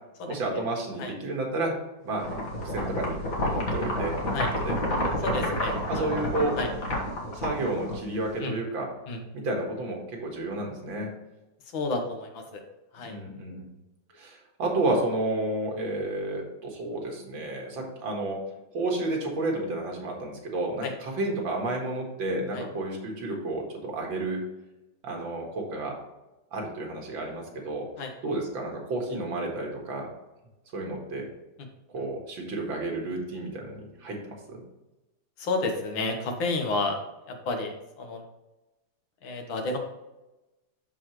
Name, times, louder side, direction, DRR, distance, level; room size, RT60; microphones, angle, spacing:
voice 1, 0.3-1.7 2.0-2.3 2.6-4.2 4.6-5.4 5.9-6.6 7.3-8.9 9.3-11.1 13.0-13.7 14.2-18.4 18.7-24.4 25.0-26.0 26.5-27.9 28.2-30.1 30.7-31.3 31.9-34.6, right 2 dB, 85° right, 0 dB, 2.4 m, -31 dB
sound 1, 2.2-8.3, left 1 dB, 45° left, 1.9 m, -29 dB
voice 2, 5.2-5.7 6.1-6.2 6.6-6.7 8.4-8.5 9.1-9.2 11.7-12.6 12.9-13.2 20.8-20.9 22.5-22.7 28.0-28.1 35.4-37.0 37.3-38.2 39.2-39.8, left 3 dB, 80° left, 3 dB, 2.0 m, -30 dB
11.5 x 4.2 x 3.1 m, 1.0 s
omnidirectional pair, 2.1 m